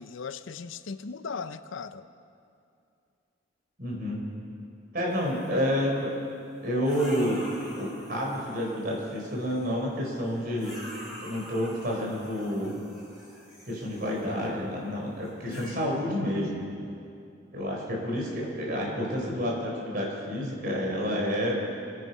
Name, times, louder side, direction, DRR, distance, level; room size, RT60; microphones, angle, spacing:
voice 1, 0.0-2.1 15.5-16.0, left 5 dB, 75° left, 12 dB, 0.6 m, -38 dB
voice 2, 3.8-4.2 4.9-6.1 6.6-7.4 7.8-10.7 11.2-12.8 13.7-16.7 17.5-21.6, equal, 45° right, -2 dB, 4.1 m, -29 dB
sound 1, 5.1-5.6 6.8-9.7 10.5-14.4 15.2-15.7, equal, ahead, 4.6 m, -46 dB
25.5 x 9.7 x 5.5 m, 2.5 s
head